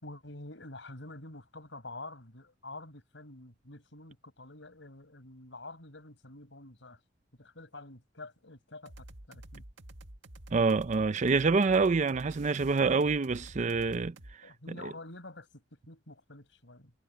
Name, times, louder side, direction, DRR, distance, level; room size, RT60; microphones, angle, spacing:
voice 1, 0.0-7.0 7.4-9.6 14.4-16.9, left 2 dB, 75° left, 6.4 m, -48 dB
sound 1, 8.9-14.4, right 1 dB, 90° right, 1.8 m, -49 dB
voice 2, 10.5-14.2, right 4 dB, 40° right, 0.5 m, -26 dB
head